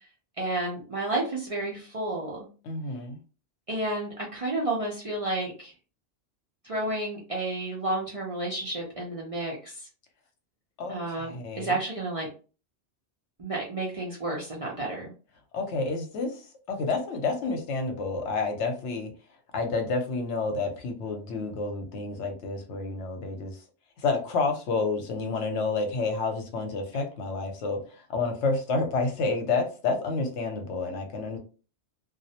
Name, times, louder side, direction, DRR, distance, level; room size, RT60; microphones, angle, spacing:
voice 1, 0.4-2.4 3.7-5.7 6.6-9.7 10.9-12.3 13.4-15.1, right 2 dB, 45° right, -3 dB, 0.4 m, -31 dB
voice 2, 2.6-3.2 10.8-11.8 15.5-16.4 16.7-19.1 19.5-23.5 24.0-31.4, left 3 dB, 80° left, 5 dB, 0.9 m, -29 dB
2.3 x 2.0 x 2.7 m, 0.35 s
omnidirectional pair, 1.2 m